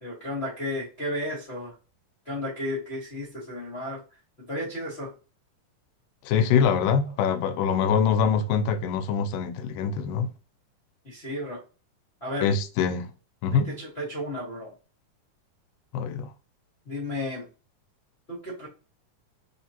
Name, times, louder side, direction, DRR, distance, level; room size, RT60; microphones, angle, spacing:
voice 1, 0.0-1.7 2.2-4.0 4.5-5.1 11.0-11.6 12.2-12.5 13.5-14.7 16.8-17.4 18.3-18.7, left 1 dB, 50° left, 0.7 m, -33 dB
voice 2, 6.3-10.3 12.4-13.1 13.4-13.7 15.9-16.3, left 6 dB, 85° left, 2.2 m, -24 dB
4.9 x 3.2 x 2.8 m
omnidirectional pair, 3.9 m